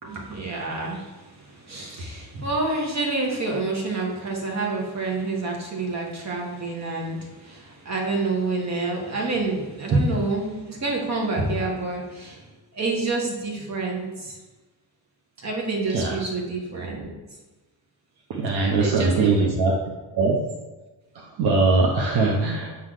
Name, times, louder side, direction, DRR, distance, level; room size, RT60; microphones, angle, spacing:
voice 1, 0.0-12.4 12.7-14.4 15.4-17.1 18.5-19.5, right 3 dB, 35° right, -1 dB, 1.6 m, -28 dB
voice 2, 18.3-19.7 20.1-20.4 21.1-22.8, right 3 dB, 55° right, -1 dB, 1.0 m, -21 dB
6.8 x 4.0 x 6.4 m, 1.2 s
cardioid pair, 175°, 45 cm